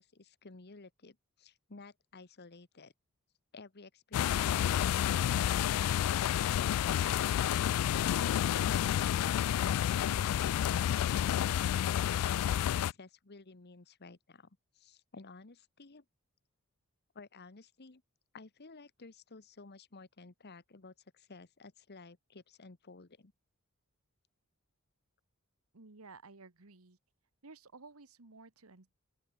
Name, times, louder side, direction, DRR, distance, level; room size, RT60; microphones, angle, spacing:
voice 1, 0.0-2.9 3.5-7.0 10.9-16.0 17.1-18.0 18.3-23.3, left 3 dB, 50° left, 1.2 m, -54 dB
sound 1, 4.1-12.9, left 10 dB, 85° left, 0.3 m, -30 dB
voice 2, 25.7-27.0 27.4-28.9, right 3 dB, 70° right, 1.6 m, -54 dB
open air
head